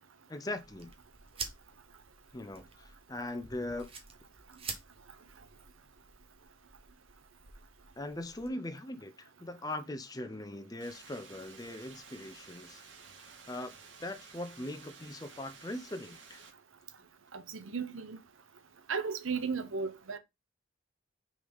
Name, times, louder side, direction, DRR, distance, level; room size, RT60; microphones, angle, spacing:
voice 1, 0.3-0.9 2.3-3.9 8.0-12.8 13.5-13.7 14.0-16.4, left 1 dB, 20° left, 0.8 m, -40 dB
sound 1, 0.6-8.5, right 5 dB, 30° right, 1.2 m, -48 dB
sound 2, 10.8-16.5, right 5 dB, 70° right, 1.8 m, -54 dB
voice 2, 17.3-18.2 18.9-20.2, right 5 dB, 90° right, 0.9 m, -35 dB
6.3 x 4.1 x 5.3 m
head